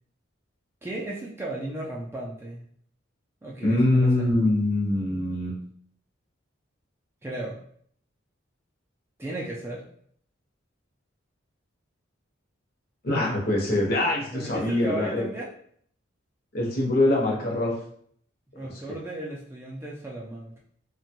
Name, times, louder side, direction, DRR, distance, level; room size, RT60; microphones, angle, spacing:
voice 1, 0.8-2.6 3.4-4.3 7.2-7.6 9.2-9.8 14.3-15.5 18.5-20.6, right 1 dB, 10° right, -4 dB, 0.3 m, -35 dB
voice 2, 3.6-5.5 13.0-15.2 16.5-17.7 18.6-18.8, left 1 dB, 50° left, -2 dB, 0.7 m, -24 dB
2.8 x 2.2 x 2.9 m, 0.62 s
head